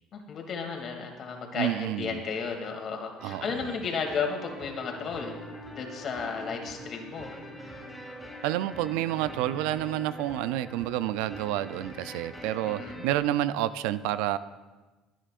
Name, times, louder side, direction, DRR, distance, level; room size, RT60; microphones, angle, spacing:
voice 1, 0.1-5.4 5.8-7.8 12.6-13.1, left 5 dB, 50° left, 3 dB, 2.6 m, -34 dB
voice 2, 1.5-2.2 3.2-3.7 8.4-14.4, right 13 dB, 80° right, 14 dB, 0.4 m, -29 dB
sound 1, 3.2-13.2, equal, 10° left, 4.5 m, -44 dB
29.0 x 10.0 x 2.5 m, 1.2 s
supercardioid pair, 80°, 0 cm